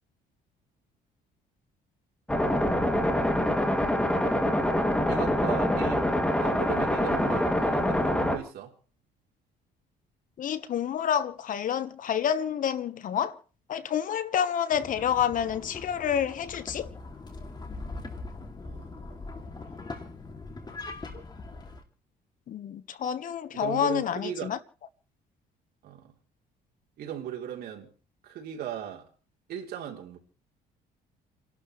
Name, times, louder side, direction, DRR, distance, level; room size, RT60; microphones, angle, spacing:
sound 1, 2.3-8.4, left 1 dB, 5° left, 2.4 m, -25 dB
voice 1, 5.1-6.1 6.4-8.7 18.6-19.3 23.5-24.6 25.8-26.1 27.0-27.9 28.2-29.1 29.5-30.2, right 10 dB, 70° right, 3.5 m, -37 dB
voice 2, 10.4-13.4 13.7-16.9 22.5-24.6, left 9 dB, 50° left, 1.3 m, -28 dB
sound 2, 14.7-21.8, left 3 dB, 25° left, 2.6 m, -41 dB
29.5 x 12.0 x 3.2 m
cardioid pair, 110°, 17 cm